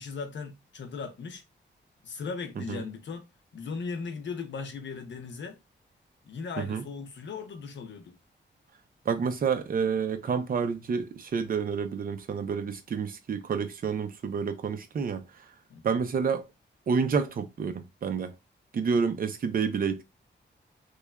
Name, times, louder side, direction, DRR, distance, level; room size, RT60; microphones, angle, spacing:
voice 1, 0.0-1.4 2.0-3.3 3.5-5.6 6.2-8.2 15.7-16.0, left 5 dB, 70° left, 0.7 m, -38 dB
voice 2, 9.1-15.2 15.8-16.5 16.9-18.3 18.7-20.0, right 6 dB, 50° right, 0.5 m, -29 dB
3.1 x 2.3 x 2.2 m
wide cardioid pair, 115°, 19 cm